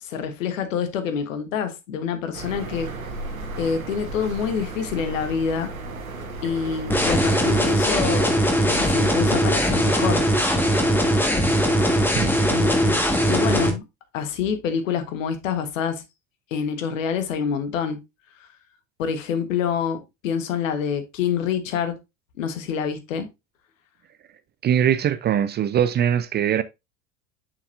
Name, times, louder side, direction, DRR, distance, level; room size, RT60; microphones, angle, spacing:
voice 1, 0.0-2.9 3.6-5.7 6.4-8.4 8.7-10.3 12.5-13.8 14.1-16.0 16.5-18.0 19.0-22.0 22.4-23.3, left 7 dB, 70° left, 1.3 m, -27 dB
sound 1, 2.3-7.6, right 2 dB, 85° right, 1.2 m, -34 dB
sound 2, 6.9-13.7, equal, 5° left, 1.5 m, -20 dB
voice 2, 24.6-26.6, right 9 dB, 25° right, 0.4 m, -21 dB
6.8 x 5.9 x 2.5 m
figure-of-eight pair, 70°, 40 cm